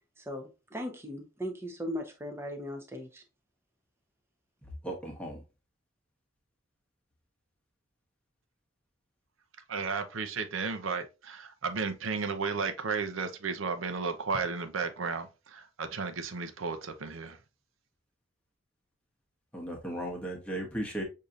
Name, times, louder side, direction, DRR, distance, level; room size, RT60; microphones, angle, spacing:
voice 1, 0.2-3.2, equal, 10° right, 0.7 m, -38 dB
voice 2, 4.8-5.4 19.5-21.0, right 1 dB, 5° left, 1.0 m, -36 dB
voice 3, 9.7-17.4, right 5 dB, 75° right, 0.6 m, -34 dB
6.4 x 2.8 x 2.4 m
head